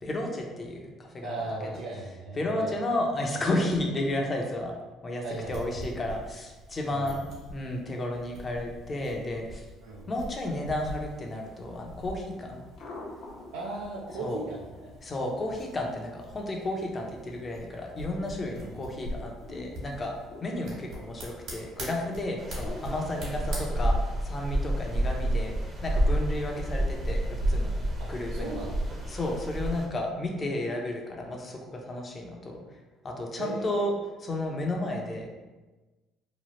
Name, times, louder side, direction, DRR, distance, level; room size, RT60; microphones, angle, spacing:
voice 1, 0.0-1.4 2.4-4.7 5.0-9.6 10.1-12.6 14.2-14.4 15.0-20.1 20.4-27.7 28.1-28.5 29.1-32.6 33.0-33.9 34.2-35.4, left 1 dB, 35° left, 1 dB, 0.6 m, -32 dB
voice 2, 1.2-2.7 5.2-5.8 6.9-7.2 9.8-10.1 13.5-14.9 18.5-18.8 23.3-23.4 28.0-28.9 33.4-33.9, right 2 dB, 90° right, -5 dB, 0.4 m, -37 dB
sound 1, 5.2-23.6, equal, 65° right, 1.4 m, -44 dB
sound 2, 10.6-30.0, left 2 dB, 65° left, 0.8 m, -50 dB
sound 3, 22.4-29.9, right 1 dB, 30° right, 0.7 m, -29 dB
3.0 x 2.3 x 2.9 m, 1.2 s
supercardioid pair, 80°, 0 cm